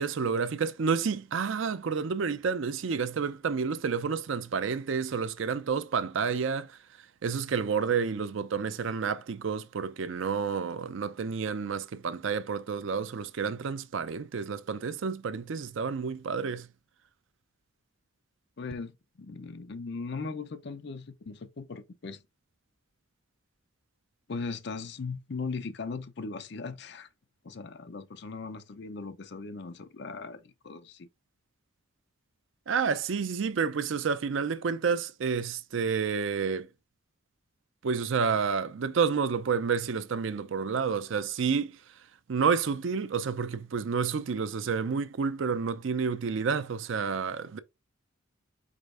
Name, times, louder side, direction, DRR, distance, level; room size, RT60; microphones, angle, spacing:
voice 1, 0.0-6.8 7.2-16.7 32.7-36.7 37.8-41.8 42.3-47.6, right 5 dB, 65° right, 0.5 m, -30 dB
voice 2, 18.6-22.2 24.3-27.1 27.4-31.1, left 4 dB, 55° left, 0.5 m, -38 dB
4.9 x 4.4 x 2.4 m
head